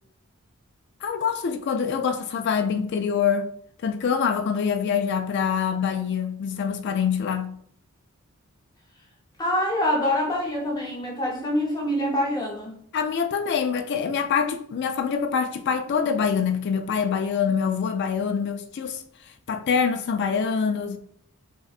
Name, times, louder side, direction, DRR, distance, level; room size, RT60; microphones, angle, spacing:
voice 1, 1.0-3.5 3.8-7.6 12.9-19.0 19.5-21.0, left 6 dB, 50° left, 0.3 m, -25 dB
voice 2, 9.4-12.8, left 1 dB, 20° left, 0.7 m, -25 dB
5.4 x 2.2 x 2.4 m
head